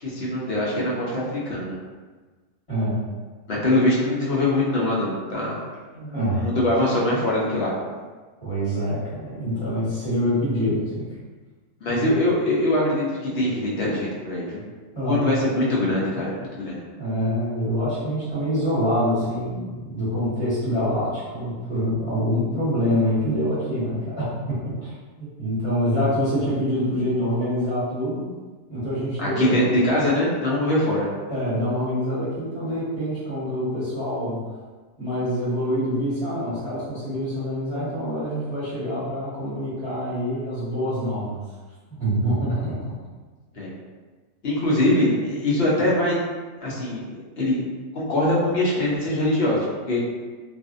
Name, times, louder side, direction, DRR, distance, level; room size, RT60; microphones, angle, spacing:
voice 1, 0.0-1.8 3.5-5.6 5.9-7.7 11.8-14.6 15.0-16.9 29.2-31.1 43.6-43.7 44.4-46.2 46.6-47.6 47.9-50.0, left 1 dB, 55° left, -5 dB, 0.8 m, -23 dB
voice 2, 2.7-3.0 6.1-6.5 8.4-11.1 11.9-12.0 14.9-15.3 17.0-24.9 25.2-28.2 28.7-29.5 31.3-34.4 35.0-41.4 42.0-42.7, equal, 20° left, -13 dB, 1.2 m, -25 dB
2.5 x 2.5 x 2.5 m, 1.4 s
omnidirectional pair, 1.5 m